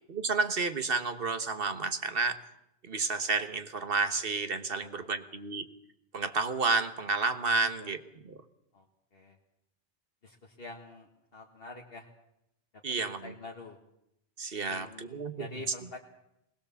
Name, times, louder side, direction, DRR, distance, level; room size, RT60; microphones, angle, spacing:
voice 1, 0.1-2.4 2.8-5.7 6.1-8.0 8.2-8.4 12.8-13.3 14.4-15.5, right 4 dB, 55° right, 9 dB, 1.4 m, -31 dB
voice 2, 10.2-12.1 13.0-13.8 14.6-16.0, left 2 dB, 55° left, 1 dB, 1.8 m, -46 dB
20.5 x 19.5 x 7.1 m, 0.83 s
omnidirectional pair, 1.1 m